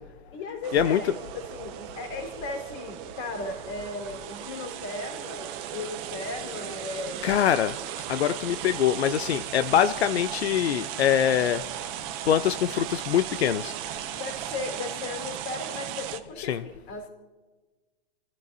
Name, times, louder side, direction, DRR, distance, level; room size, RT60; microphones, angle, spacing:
voice 1, 0.3-7.3 14.1-17.1, left 3 dB, 35° left, 2 dB, 4.1 m, -36 dB
sound 1, 0.6-16.2, right 11 dB, 20° right, 0.6 m, -36 dB
voice 2, 7.2-7.8 8.1-11.6 12.3-13.7 16.4-16.6, left 9 dB, 85° left, 11 dB, 0.8 m, -24 dB
29.0 x 15.0 x 2.7 m, 1.3 s
hypercardioid pair, 165°, 31 cm